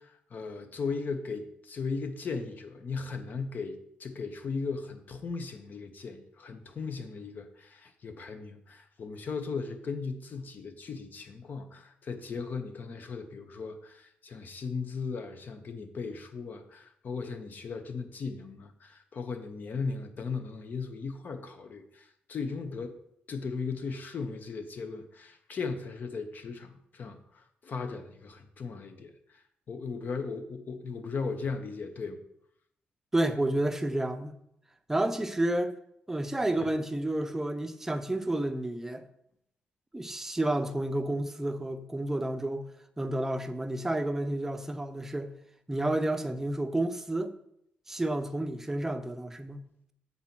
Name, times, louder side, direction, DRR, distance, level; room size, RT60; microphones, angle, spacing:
voice 1, 0.0-23.0 23.3-29.1 29.7-32.2, left 4 dB, 50° left, 8 dB, 0.9 m, -37 dB
voice 2, 33.1-34.4 34.9-35.8 36.1-39.1 39.9-45.3 45.7-47.3 47.9-49.7, right 1 dB, 10° right, 8 dB, 0.6 m, -30 dB
7.3 x 4.1 x 6.0 m, 0.74 s
cardioid pair, 110°, 4 cm